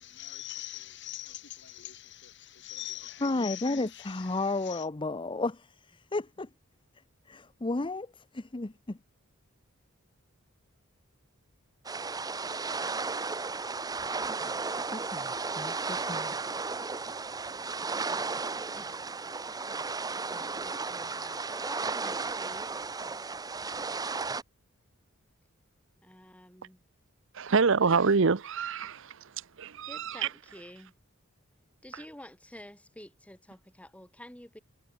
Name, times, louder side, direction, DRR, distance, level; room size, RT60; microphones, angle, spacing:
voice 1, 0.0-4.9, left 14 dB, 60° left, 3.8 m, -43 dB
voice 2, 3.2-6.5 7.3-9.0 14.9-16.4, left 2 dB, 25° left, 0.7 m, -33 dB
sound 1, 11.9-24.4, right 4 dB, 20° right, 0.7 m, -34 dB
voice 3, 17.9-18.4 18.8-18.9 20.2-22.7 26.0-26.8 29.9-30.9 31.8-34.6, left 1 dB, 5° left, 3.5 m, -50 dB
voice 4, 27.3-29.3 29.6-30.3, right 5 dB, 65° right, 0.8 m, -26 dB
head